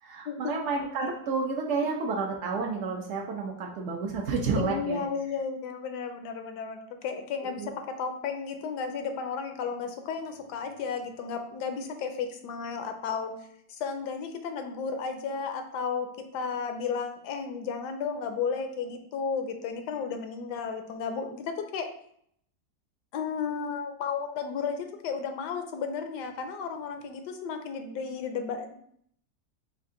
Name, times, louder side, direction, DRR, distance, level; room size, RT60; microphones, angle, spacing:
voice 1, 0.0-5.0 7.6-7.7, right 4 dB, 75° right, 0 dB, 0.6 m, -30 dB
voice 2, 4.6-13.3 13.8-21.9 23.1-28.7, left 5 dB, 85° left, 6 dB, 1.2 m, -33 dB
4.5 x 2.5 x 3.6 m, 0.66 s
omnidirectional pair, 1.8 m